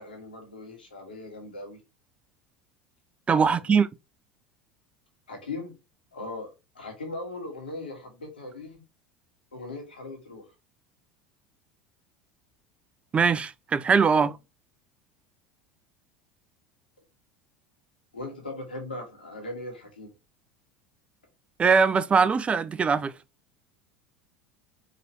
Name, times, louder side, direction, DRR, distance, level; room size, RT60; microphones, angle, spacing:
voice 1, 0.0-1.8 3.4-3.6 5.3-5.8 6.1-8.8 9.5-10.5 14.1-14.3 18.1-20.1, left 2 dB, 85° left, 1.8 m, -39 dB
voice 2, 3.3-3.9 13.1-14.3 21.6-23.1, right 5 dB, 25° right, 0.4 m, -21 dB
4.9 x 3.1 x 2.9 m
figure-of-eight pair, 75°, 5 cm